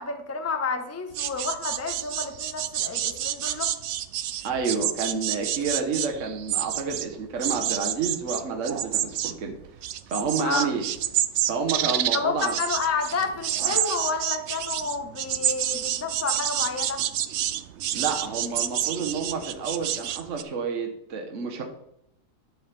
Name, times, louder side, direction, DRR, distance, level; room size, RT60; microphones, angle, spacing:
voice 1, 0.0-3.7 10.4-10.7 12.1-17.0, left 5 dB, 15° left, 6 dB, 0.7 m, -30 dB
sound 1, 1.1-7.1 7.4-20.4, right 11 dB, 75° right, 0.6 m, -29 dB
voice 2, 4.4-9.5 10.1-10.8 11.4-12.5 17.9-21.6, right 5 dB, 55° right, 3 dB, 1.3 m, -29 dB
11.0 x 7.2 x 3.4 m, 0.79 s
omnidirectional pair, 1.7 m